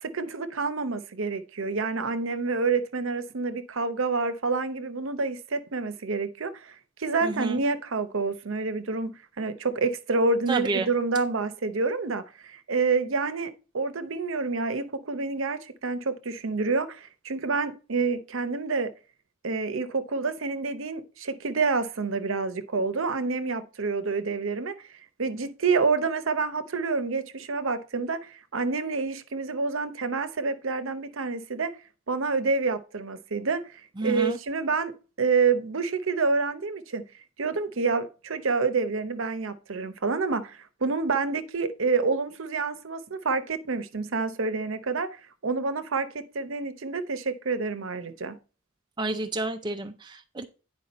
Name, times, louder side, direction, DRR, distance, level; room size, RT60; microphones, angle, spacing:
voice 1, 0.0-18.9 19.4-24.7 25.2-31.7 32.1-34.9 35.2-37.0 37.4-48.4, right 4 dB, 65° right, 0.8 m, -28 dB
voice 2, 7.2-7.6 10.5-10.9 34.0-34.4 49.0-50.5, right 3 dB, 20° right, 0.4 m, -30 dB
9.4 x 4.8 x 4.1 m
head